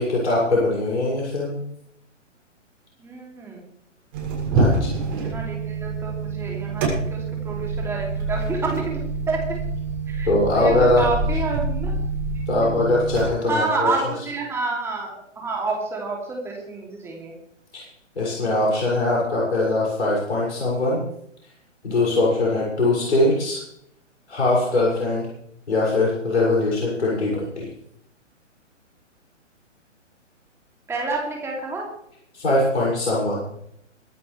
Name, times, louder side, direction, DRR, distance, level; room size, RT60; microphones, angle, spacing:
voice 1, 0.0-1.6 4.5-5.0 10.3-11.1 12.5-13.9 17.7-17.8 18.1-21.0 21.8-23.6 24.3-25.3 25.7-27.7 32.3-33.4, left 2 dB, 60° left, -5 dB, 6.7 m, -21 dB
voice 2, 3.0-3.6 5.0-9.0 9.3-9.4 10.1-12.0 12.6-12.7 13.5-17.3 30.9-31.9, right 3 dB, 5° right, -1 dB, 2.9 m, -29 dB
sound 1, 4.1-13.3, right 3 dB, 35° right, 6.9 m, -26 dB
23.5 x 11.5 x 3.4 m, 0.72 s
figure-of-eight pair, 130°, 38 cm